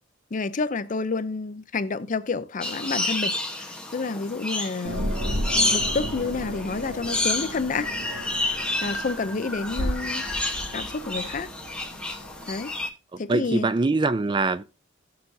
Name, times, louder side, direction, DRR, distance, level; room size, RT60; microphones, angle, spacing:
voice 1, 0.3-5.1 5.7-7.9 8.8-10.2 10.7-11.5 12.5-12.7 13.2-13.7, left 4 dB, 40° left, 0.5 m, -29 dB
sound 1, 2.6-12.9, left 2 dB, 5° left, 1.1 m, -30 dB
sound 2, 4.8-12.8, equal, 40° right, 2.5 m, -34 dB
voice 2, 13.1-14.6, right 3 dB, 25° right, 0.4 m, -23 dB
16.5 x 6.7 x 2.7 m
head